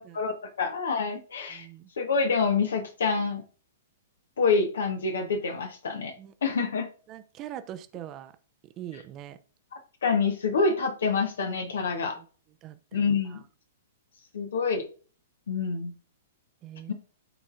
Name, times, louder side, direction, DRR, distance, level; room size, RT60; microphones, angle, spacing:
voice 1, 0.0-1.7 2.0-3.4 4.4-6.1 6.4-6.9 10.0-12.2 12.9-13.4 14.3-14.8 15.5-15.9 16.9-17.0, left 4 dB, 65° left, 6 dB, 1.2 m, -27 dB
voice 2, 1.5-1.9 6.2-6.3 7.1-8.3 8.8-9.4 12.2-12.3 12.6-13.0 13.3-13.4 16.6-16.9, right 12 dB, 30° right, 11 dB, 0.7 m, -42 dB
12.0 x 4.1 x 2.5 m, 0.39 s
figure-of-eight pair, 110°, 0 cm